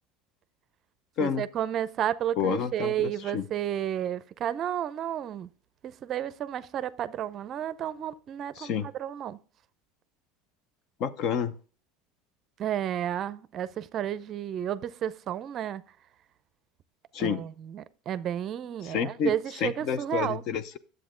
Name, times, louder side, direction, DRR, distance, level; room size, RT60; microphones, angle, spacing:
voice 1, 1.2-5.5 5.8-8.7 9.0-9.4 12.6-15.8 17.2-20.4, right 10 dB, 40° right, 0.5 m, -32 dB
voice 2, 2.4-3.5 8.6-8.9 11.0-11.5 17.1-17.4 18.8-20.8, left 7 dB, 50° left, 0.7 m, -29 dB
10.0 x 7.8 x 3.7 m
supercardioid pair, 135°, 0 cm